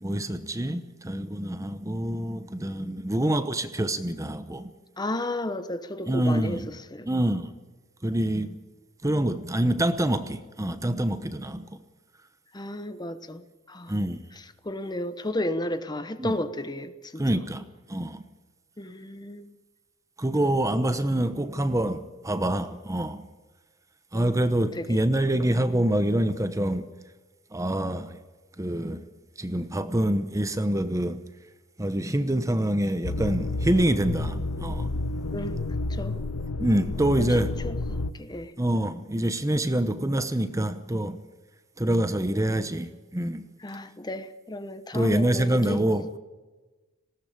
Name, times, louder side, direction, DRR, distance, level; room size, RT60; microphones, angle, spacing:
voice 1, 0.0-4.7 6.1-6.7 7.1-7.5 8.0-8.6 9.0-11.8 13.9-14.2 16.2-16.3 17.2-18.2 20.2-23.3 24.1-26.8 27.5-28.2 28.6-29.0 29.4-31.2 31.8-34.9 36.6-37.5 38.6-41.2 41.8-43.5 44.9-46.2, right 1 dB, 15° right, 1.0 m, -26 dB
voice 2, 5.0-7.1 12.5-13.9 14.4-17.2 18.8-19.5 24.1-25.0 35.3-35.6 35.9-36.2 37.2-38.5 43.6-46.1, left 1 dB, 20° left, 1.0 m, -33 dB
sound 1, 33.0-38.1, left 2 dB, 80° left, 1.0 m, -30 dB
20.0 x 17.5 x 8.7 m
head